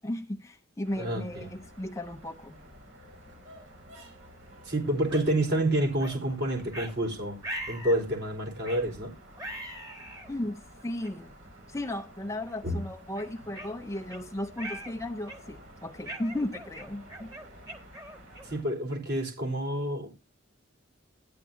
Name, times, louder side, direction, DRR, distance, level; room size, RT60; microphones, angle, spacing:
voice 1, 0.0-2.6 10.3-11.3 11.7-17.3, left 1 dB, 15° left, 0.6 m, -35 dB
sound 1, 0.8-18.6, equal, 80° right, 5.7 m, -51 dB
voice 2, 1.0-1.5 4.6-7.4 7.7-9.1 12.6-12.8 18.4-20.1, right 1 dB, 55° right, 4.3 m, -28 dB
sound 2, 5.1-5.3 6.0-6.2 6.7-6.9 7.4-8.0 8.6-8.9 9.4-10.3 11.0-11.1 11.8-12.0 12.5-12.6 13.2-14.2 14.6-14.9 15.3-15.6 16.1-18.6, right 1 dB, 20° right, 1.7 m, -41 dB
13.5 x 10.5 x 2.7 m
head